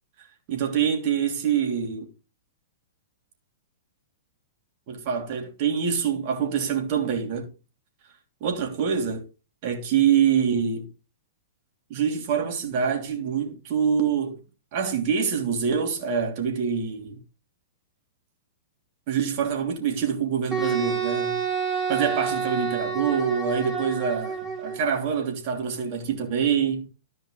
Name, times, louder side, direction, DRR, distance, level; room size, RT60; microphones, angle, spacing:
voice 1, 0.5-2.1 4.9-7.5 8.4-9.2 9.6-10.9 11.9-14.4 14.7-17.2 19.1-21.4 21.9-26.9, right 7 dB, 45° right, 3.1 m, -25 dB
Wind instrument woodwind instrument, 20.5-24.8, right 6 dB, 15° right, 4.9 m, -28 dB
14.0 x 5.4 x 3.9 m
figure-of-eight pair, 105°, 0 cm